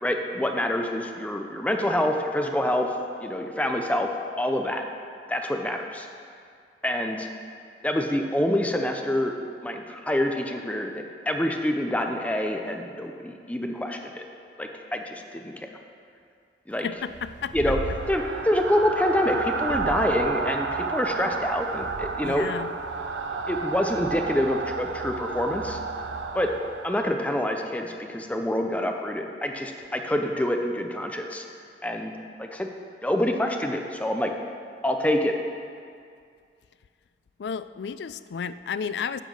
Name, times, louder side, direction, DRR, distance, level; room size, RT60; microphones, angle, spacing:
voice 1, 0.0-2.9 3.2-4.1 4.4-4.8 5.3-6.1 6.8-7.3 7.8-9.3 9.6-14.2 14.6-15.7 16.7-16.9 17.5-17.8 18.1-22.5 23.5-25.8 26.3-26.5 26.8-31.4 31.8-32.1 32.4-32.7 33.0-34.3 34.8-35.3, left 1 dB, 10° left, 3 dB, 0.6 m, -26 dB
voice 2, 16.8-17.5 22.2-22.7 37.4-39.2, left 6 dB, 65° left, 13 dB, 0.4 m, -32 dB
sound 1, 17.1-27.1, right 4 dB, 80° right, 0.6 m, -31 dB
9.1 x 7.3 x 6.2 m, 2.3 s
head